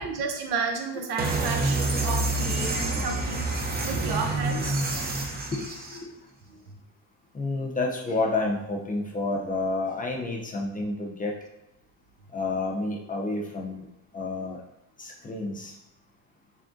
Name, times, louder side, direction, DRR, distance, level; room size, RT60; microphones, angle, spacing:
voice 1, 0.0-4.8 6.5-6.7, right 4 dB, 80° right, 3 dB, 0.7 m, -32 dB
sound 1, 1.2-6.0, right 2 dB, 25° right, 0.6 m, -27 dB
voice 2, 7.3-11.3 12.3-13.8 14.1-14.6 15.0-15.7, left 2 dB, 20° left, -1 dB, 0.5 m, -29 dB
3.5 x 3.4 x 2.6 m, 0.86 s
cardioid pair, 130°, 38 cm